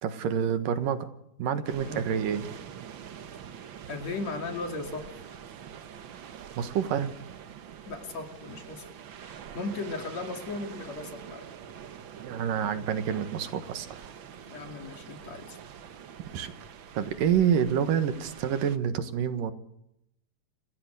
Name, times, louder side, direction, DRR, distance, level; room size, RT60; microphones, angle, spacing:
voice 1, 0.0-1.1 1.4-2.5 6.6-7.1 12.2-14.1 16.3-16.5 17.0-19.5, right 8 dB, 85° right, 10 dB, 3.2 m, -28 dB
sound 1, 1.6-18.8, right 8 dB, 65° right, 1.2 m, -45 dB
voice 2, 3.9-5.2 7.9-8.9 9.2-11.5 14.4-15.6, left 3 dB, 55° left, 5 dB, 3.8 m, -37 dB
28.0 x 16.0 x 8.1 m, 0.81 s
omnidirectional pair, 3.7 m